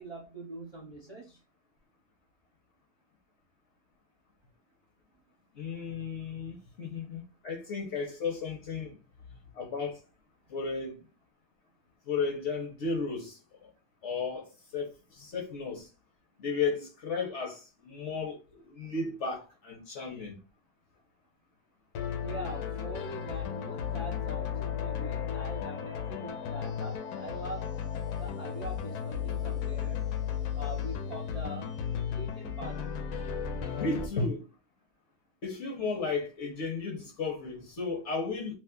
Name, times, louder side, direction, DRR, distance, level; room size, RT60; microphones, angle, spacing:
voice 1, 0.0-1.4 22.2-27.7 28.1-30.0 30.5-31.7 32.1-32.9, right 2 dB, 40° right, 0.5 m, -43 dB
voice 2, 5.5-9.0 9.3-10.0 10.5-11.0 12.1-13.7 14.0-15.9 16.4-20.4 33.8-34.5 35.4-38.6, left 4 dB, 55° left, 1.0 m, -34 dB
sound 1, 22.0-34.1, left 8 dB, 70° left, 1.0 m, -34 dB
2.7 x 2.4 x 3.6 m
omnidirectional pair, 1.8 m